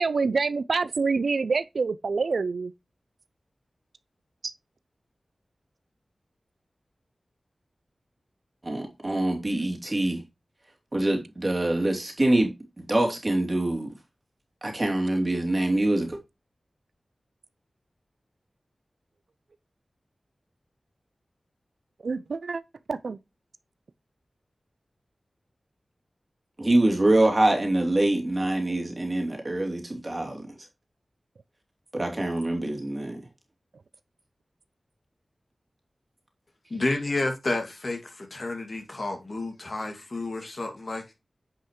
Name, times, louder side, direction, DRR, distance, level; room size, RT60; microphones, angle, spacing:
voice 1, 0.0-2.7 4.4-4.5 22.0-22.6 22.9-23.2, right 4 dB, 85° right, 0.4 m, -26 dB
voice 2, 8.6-10.2 10.9-12.5 12.9-13.9 14.6-16.2 26.6-30.4 31.9-33.2, right 1 dB, 35° right, 2.8 m, -24 dB
voice 3, 36.7-41.1, left 2 dB, 50° left, 2.2 m, -30 dB
9.4 x 5.5 x 3.1 m
wide cardioid pair, 65°, 0 cm